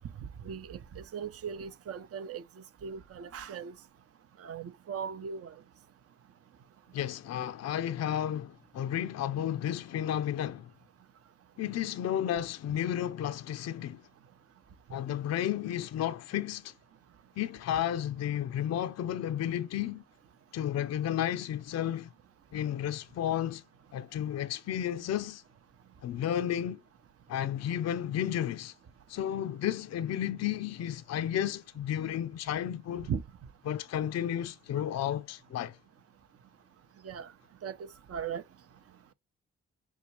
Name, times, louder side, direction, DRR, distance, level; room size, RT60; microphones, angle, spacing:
voice 1, 0.4-2.4 2.8-3.7 4.4-5.5 33.1-33.2 37.0-37.3 37.6-38.4, right 7 dB, 45° right, 0.7 m, -38 dB
voice 2, 6.9-10.7 11.6-14.0 14.9-16.7 17.4-20.0 20.5-22.1 22.5-23.6 23.9-25.4 26.0-26.8 27.3-28.7 29.1-33.1 33.7-35.8, left 10 dB, 50° left, 0.5 m, -32 dB
5.3 x 2.3 x 3.0 m
hypercardioid pair, 40°, 34 cm